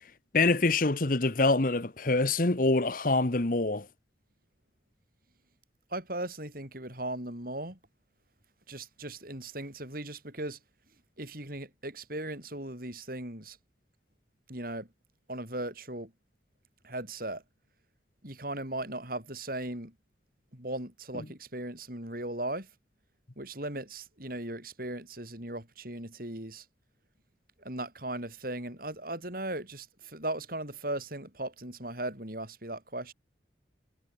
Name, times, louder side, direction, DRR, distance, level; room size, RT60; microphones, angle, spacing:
voice 1, 0.3-3.9, left 3 dB, 45° left, 1.1 m, -25 dB
voice 2, 5.9-7.8 8.7-10.6 11.2-13.6 14.5-14.9 15.3-16.1 16.8-17.4 18.2-19.9 20.5-22.7 23.4-26.7 27.6-33.1, right 1 dB, 50° right, 7.3 m, -37 dB
head